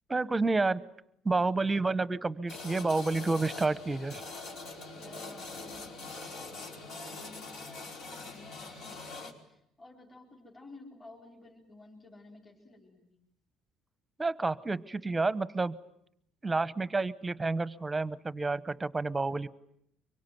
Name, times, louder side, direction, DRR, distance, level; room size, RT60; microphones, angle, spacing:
voice 1, 0.1-0.8 1.2-4.2 14.2-15.8 16.4-19.5, right 3 dB, 15° right, 16 dB, 1.0 m, -29 dB
sound 1, 2.5-9.3, left 3 dB, 65° left, 4.8 m, -43 dB
voice 2, 5.0-13.2, left 2 dB, 25° left, 0 dB, 4.4 m, -53 dB
25.0 x 23.5 x 9.3 m, 0.74 s
cardioid pair, 125°, 0 cm